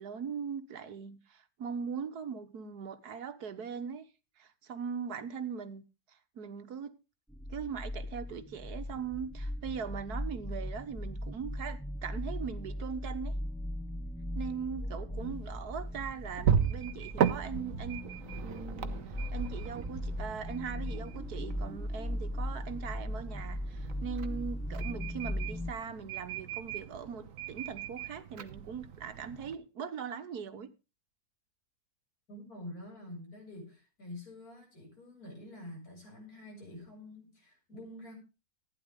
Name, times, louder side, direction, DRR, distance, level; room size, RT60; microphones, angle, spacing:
voice 1, 0.0-4.1 4.4-7.0 7.5-13.4 14.4-18.1 18.4-30.7, right 6 dB, 80° right, 1.7 m, -40 dB
sound 1, 7.3-25.7, left 1 dB, ahead, 0.7 m, -38 dB
voice 2, 14.8-15.4 32.3-38.2, left 1 dB, 70° left, 7.7 m, -47 dB
sound 2, 15.2-29.6, right 8 dB, 60° right, 1.3 m, -37 dB
15.0 x 10.0 x 3.7 m
omnidirectional pair, 1.6 m